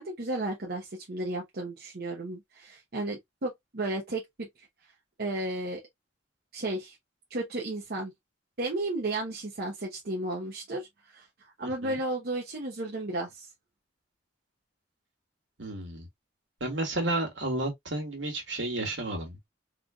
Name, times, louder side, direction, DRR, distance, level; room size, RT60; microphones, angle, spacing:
voice 1, 0.0-4.5 5.2-5.8 6.5-7.0 7.3-8.1 8.6-13.5, right 2 dB, 55° right, 0.9 m, -33 dB
voice 2, 11.6-12.0 15.6-16.1 16.6-19.4, right 2 dB, 75° right, 1.8 m, -32 dB
3.9 x 3.2 x 2.3 m
head